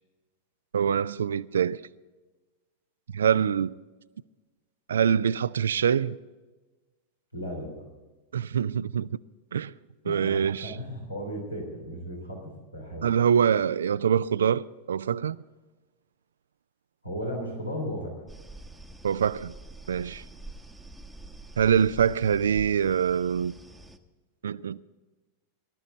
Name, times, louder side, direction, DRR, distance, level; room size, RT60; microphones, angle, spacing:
voice 1, 0.7-1.8 3.1-3.7 4.9-6.2 8.3-9.1 9.5-9.7 10.1-10.7 13.0-15.4 19.0-19.5 19.9-20.2 21.6-23.5 24.4-24.8, right 8 dB, 65° right, 0.3 m, -24 dB
voice 2, 7.3-7.8 10.0-10.4 10.6-13.1 17.0-18.1, equal, 85° left, 3.8 m, -35 dB
sound 1, 18.3-24.0, right 2 dB, 5° right, 1.0 m, -46 dB
19.0 x 12.5 x 3.9 m
figure-of-eight pair, 90°, 0 cm